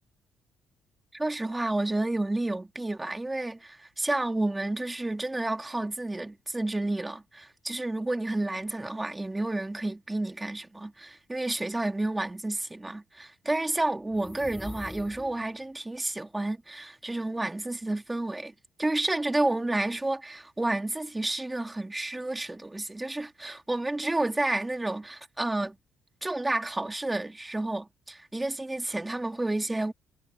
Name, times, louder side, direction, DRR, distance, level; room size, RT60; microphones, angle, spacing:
voice 1, 1.1-18.5 18.8-25.8 26.2-29.9, right 2 dB, 15° right, 2.4 m, -30 dB
sound 1, 14.0-15.6, left 2 dB, 10° left, 5.5 m, -43 dB
cardioid pair, 90°, 0 cm